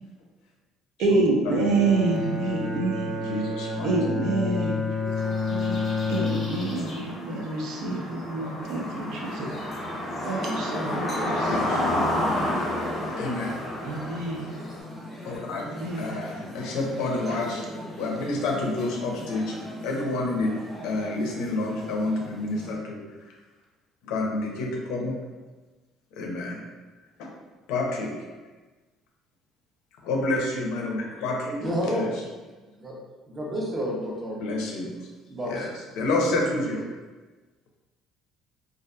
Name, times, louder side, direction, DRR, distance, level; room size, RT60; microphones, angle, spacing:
voice 1, 1.0-3.1 3.8-9.5 10.2-11.6 13.8-14.5 15.6-16.1, right 3 dB, 70° right, 0 dB, 0.4 m, -27 dB
Bowed string instrument, 1.4-6.9, left 4 dB, 40° right, 0.8 m, -29 dB
voice 2, 3.1-4.2 6.6-6.9 11.3-11.8 13.2-13.6 15.2-15.6 16.0-17.6 18.0-19.6 19.8-20.5 20.8-23.0 24.0-25.1 26.1-26.6 27.2-27.3 27.7-28.4 30.0-31.6 31.8-32.1 34.3-34.9 35.5-35.7 36.0-36.8, left 2 dB, 90° left, 0 dB, 0.5 m, -29 dB
sound 1, 5.1-14.8, left 1 dB, 30° left, 0.6 m, -31 dB
sound 2, 8.6-22.7, equal, ahead, 1.0 m, -41 dB
voice 3, 31.6-32.1 32.5-32.9 33.3-34.4 35.3-35.7, equal, 15° right, -4 dB, 0.5 m, -30 dB
2.6 x 2.3 x 2.2 m, 1.2 s
cardioid pair, 160°, 0 cm